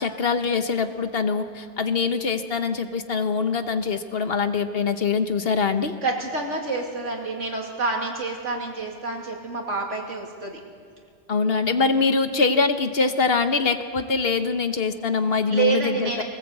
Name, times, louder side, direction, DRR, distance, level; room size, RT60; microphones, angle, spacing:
voice 1, 0.0-5.9 11.3-16.2, left 4 dB, 55° left, 9 dB, 1.2 m, -23 dB
voice 2, 6.0-10.6 15.5-16.2, right 4 dB, 80° right, 0 dB, 3.0 m, -28 dB
21.0 x 18.5 x 8.0 m, 2.1 s
omnidirectional pair, 1.2 m